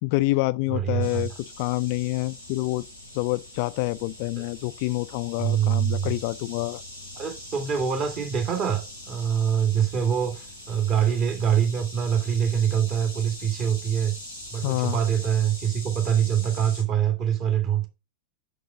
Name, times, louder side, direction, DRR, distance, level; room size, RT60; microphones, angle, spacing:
voice 1, 0.0-2.9 3.1-6.8 14.6-15.0, left 21 dB, 45° left, 0.3 m, -27 dB
voice 2, 0.7-1.2 5.4-6.2 7.2-14.1 14.5-17.9, right 8 dB, 35° right, 2.1 m, -24 dB
sound 1, 1.0-16.8, left 1 dB, 90° right, 4.4 m, -42 dB
6.4 x 6.1 x 5.7 m
figure-of-eight pair, 90°, 0 cm